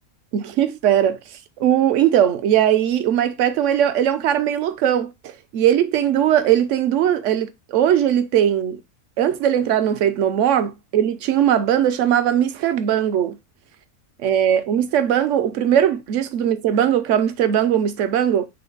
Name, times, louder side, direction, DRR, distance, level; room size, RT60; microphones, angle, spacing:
voice 1, 0.3-1.2 1.6-8.8 9.2-13.4 14.2-18.5, right 10 dB, 70° right, 0.8 m, -19 dB
5.7 x 2.1 x 3.8 m
omnidirectional pair, 1.5 m